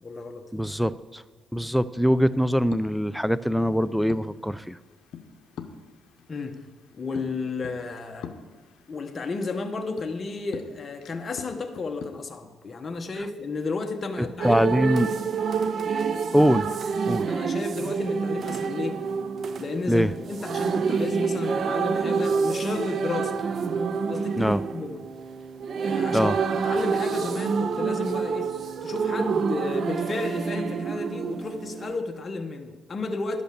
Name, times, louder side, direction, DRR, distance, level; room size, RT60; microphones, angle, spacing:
voice 1, 0.0-0.4 6.3-6.6 6.9-8.3 8.9-14.6 17.3-19.0 19.6-23.4 24.1-25.1 25.8-26.3 26.6-28.5 28.8-33.4, left 3 dB, 35° left, 4 dB, 1.0 m, -32 dB
voice 2, 0.5-1.2 1.5-4.8 14.2-15.1 16.3-16.7 17.1-17.3 19.9-20.1 24.4-24.6 26.1-26.4, equal, ahead, 16 dB, 0.4 m, -23 dB
sound 1, 2.2-12.0, left 7 dB, 75° left, 0.7 m, -46 dB
sound 2, 14.4-32.0, right 5 dB, 55° right, 0.5 m, -27 dB
11.5 x 5.3 x 6.6 m, 1.4 s
cardioid pair, 90°, 0 cm